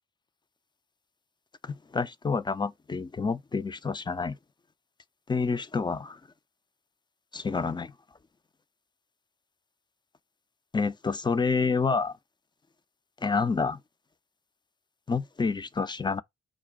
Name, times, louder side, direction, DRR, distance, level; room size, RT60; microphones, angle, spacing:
voice 1, 1.6-4.4 5.3-6.2 7.3-7.9 10.7-12.2 13.2-13.8 15.1-16.2, left 4 dB, 15° left, 0.4 m, -28 dB
5.0 x 2.3 x 3.5 m
hypercardioid pair, 45°, 33 cm